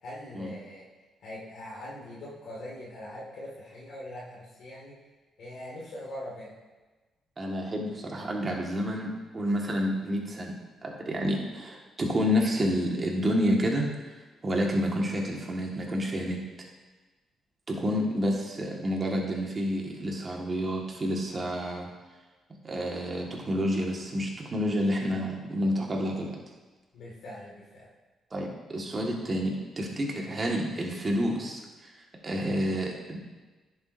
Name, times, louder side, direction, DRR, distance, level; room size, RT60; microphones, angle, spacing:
voice 1, 0.0-0.9 1.2-5.0 5.4-6.5 26.9-27.9, left 1 dB, 70° left, -6 dB, 2.0 m, -42 dB
voice 2, 7.4-10.5 10.8-13.9 14.4-16.4 17.7-21.9 22.6-26.4 28.3-31.9 32.2-33.2, equal, 35° right, 0 dB, 1.6 m, -29 dB
10.5 x 7.2 x 2.6 m, 1.2 s
cardioid pair, 90°, 0 cm